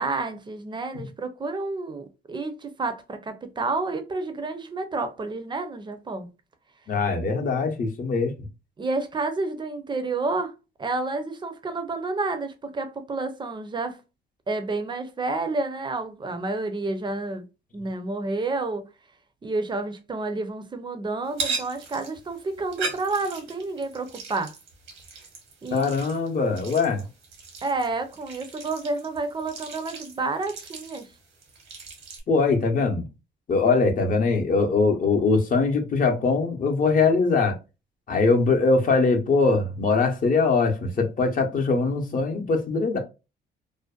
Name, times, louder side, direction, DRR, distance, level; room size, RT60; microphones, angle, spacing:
voice 1, 0.0-6.3 8.8-10.5 10.8-14.0 14.5-17.4 17.7-18.9 19.4-24.5 25.6-25.9 27.6-31.1, right 3 dB, 25° right, 0.5 m, -30 dB
voice 2, 6.9-8.4 25.7-27.0 32.3-33.1 33.5-37.5 38.1-43.0, left 4 dB, 45° left, 0.7 m, -22 dB
sound 1, 21.3-32.2, right 4 dB, 85° right, 1.0 m, -38 dB
2.5 x 2.1 x 2.3 m
cardioid pair, 90°, 20 cm